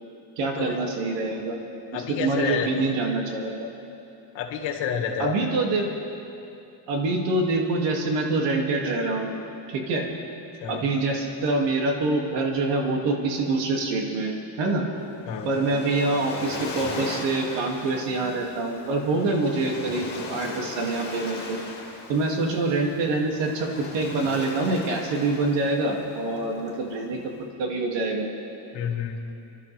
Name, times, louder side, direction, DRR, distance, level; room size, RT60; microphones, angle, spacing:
voice 1, 0.4-1.6 1.9-3.5 5.2-5.9 6.9-9.3 9.7-10.1 10.7-14.9 15.5-21.6 22.1-27.3 27.6-28.3, right 2 dB, 75° right, 0 dB, 2.4 m, -25 dB
voice 2, 1.9-2.9 4.3-5.4 10.6-10.9 15.3-15.5 28.7-29.2, left 7 dB, 80° left, 2 dB, 1.9 m, -29 dB
Waves surf, 15.0-27.4, left 3 dB, 25° left, 2.1 m, -39 dB
29.0 x 12.5 x 3.4 m, 2.8 s
cardioid pair, 180°, 44 cm